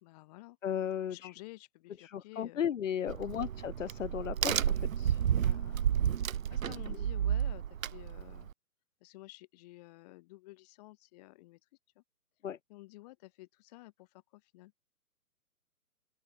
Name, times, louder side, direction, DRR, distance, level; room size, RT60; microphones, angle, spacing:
voice 1, 0.0-0.6 1.1-2.7 3.2-3.5 5.3-5.9 6.5-8.5 9.0-11.6 12.0-12.1 12.7-14.7, left 20 dB, 25° left, 2.0 m, -52 dB
voice 2, 0.6-1.2 2.1-5.1 12.4-12.6, left 9 dB, 55° left, 0.6 m, -35 dB
Crack, 3.1-8.5, right 9 dB, 60° right, 0.6 m, -31 dB
open air
figure-of-eight pair, 130°, 47 cm